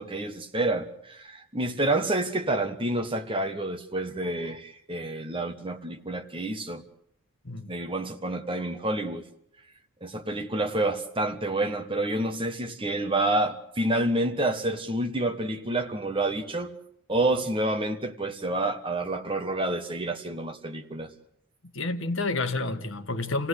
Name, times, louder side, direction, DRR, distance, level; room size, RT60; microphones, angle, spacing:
voice 1, 0.0-6.8 7.7-9.3 10.0-16.7 17.1-21.1, right 2 dB, 25° right, 1.3 m, -28 dB
voice 2, 7.4-7.8 21.7-23.5, left 3 dB, 60° left, 1.4 m, -29 dB
28.0 x 17.0 x 8.1 m
head